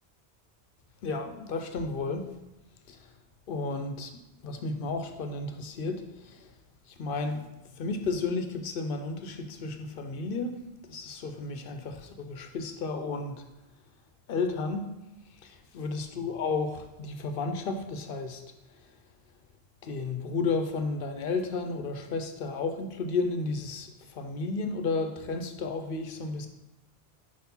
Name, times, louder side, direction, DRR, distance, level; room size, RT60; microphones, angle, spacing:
voice 1, 1.0-2.3 2.9-3.2 3.5-6.6 6.8-13.5 14.3-18.4 18.7-19.0 19.8-26.5, left 3 dB, 65° left, 7 dB, 0.8 m, -33 dB
5.0 x 4.6 x 5.3 m, 0.99 s
omnidirectional pair, 1.1 m